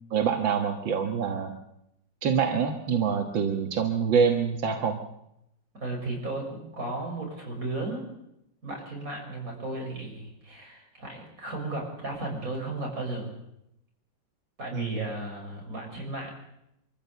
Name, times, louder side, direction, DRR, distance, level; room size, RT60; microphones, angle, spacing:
voice 1, 0.1-1.5 2.2-5.0 14.7-15.0, right 6 dB, 85° right, 4 dB, 2.2 m, -25 dB
voice 2, 5.7-8.1 8.6-13.3 14.6-16.3, right 2 dB, 45° right, 0 dB, 6.9 m, -35 dB
24.5 x 15.0 x 8.1 m, 0.83 s
omnidirectional pair, 2.0 m